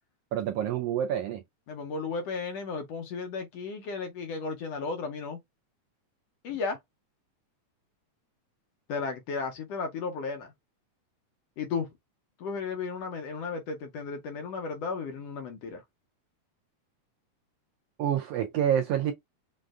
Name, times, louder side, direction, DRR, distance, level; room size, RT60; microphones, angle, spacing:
voice 1, 0.3-1.4 18.0-19.1, right 10 dB, 90° right, 1.3 m, -27 dB
voice 2, 1.7-5.4 6.4-6.8 8.9-10.5 11.6-11.9 12.4-15.8, left 4 dB, 75° left, 1.7 m, -34 dB
6.3 x 2.4 x 2.3 m
omnidirectional pair, 3.3 m